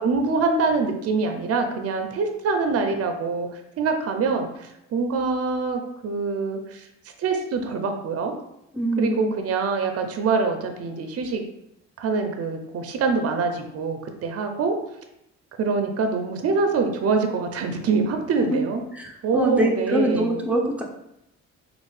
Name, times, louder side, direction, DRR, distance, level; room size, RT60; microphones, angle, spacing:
voice 1, 0.0-3.5 3.8-6.8 7.2-8.4 9.0-11.4 12.0-14.8 15.6-18.8 19.2-20.4, right 4 dB, 50° right, 5 dB, 0.6 m, -24 dB
voice 2, 8.7-9.3 18.5-18.6 18.9-20.8, right 1 dB, 5° right, 0 dB, 0.6 m, -24 dB
3.3 x 2.5 x 3.2 m, 0.82 s
cardioid pair, 90°, 30 cm